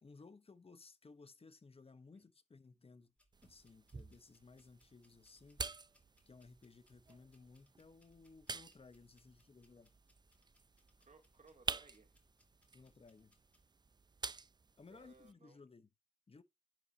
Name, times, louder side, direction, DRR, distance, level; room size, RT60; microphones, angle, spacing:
voice 1, 0.0-3.1 3.4-5.6 6.3-9.9 12.7-13.3 14.8-15.9 16.3-16.4, left 4 dB, 50° left, 1.0 m, -59 dB
sound 1, 3.2-13.6, equal, 10° left, 2.6 m, -76 dB
sound 2, 3.3-15.3, right 4 dB, 35° right, 0.4 m, -49 dB
voice 2, 11.0-12.2 14.9-15.6, right 4 dB, 75° right, 2.8 m, -64 dB
10.5 x 5.4 x 2.8 m
wide cardioid pair, 105°, 13 cm